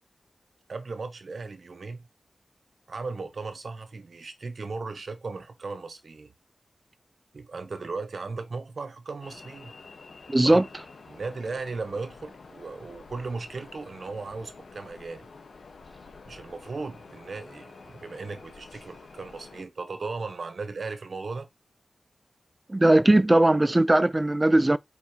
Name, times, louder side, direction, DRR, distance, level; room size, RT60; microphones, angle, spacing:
voice 1, 0.7-2.1 2.9-6.3 7.3-9.7 10.4-10.6 11.1-15.3 16.2-21.5, right 4 dB, 60° right, 1.1 m, -36 dB
sound 1, 9.2-19.6, left 4 dB, 75° left, 1.4 m, -48 dB
voice 2, 10.3-10.6 22.7-24.8, right 1 dB, 20° right, 0.4 m, -19 dB
5.0 x 4.6 x 5.0 m
wide cardioid pair, 95°, 0 cm